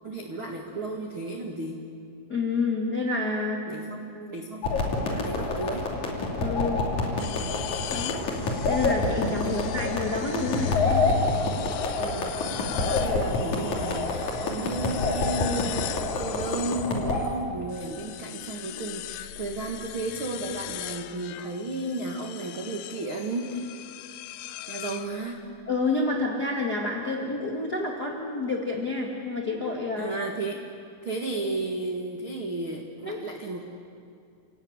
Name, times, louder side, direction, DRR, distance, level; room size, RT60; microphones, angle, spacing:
voice 1, 0.0-1.8 3.7-4.6 5.1-5.9 9.4-9.7 12.0-12.6 12.8-23.8 24.7-25.4 30.0-30.6 31.0-33.6, right 2 dB, 85° right, 1 dB, 1.1 m, -33 dB
voice 2, 2.3-3.7 6.4-6.8 7.9-8.3 8.7-11.1 25.7-30.1 33.0-33.2, left 3 dB, 65° left, -1 dB, 0.9 m, -29 dB
sound 1, 4.6-17.2, left 3 dB, 40° left, 3.6 m, -28 dB
sound 2, 7.2-17.3 17.7-25.6, left 11 dB, 80° left, 3.2 m, -37 dB
30.0 x 17.5 x 9.7 m, 2.4 s
omnidirectional pair, 5.8 m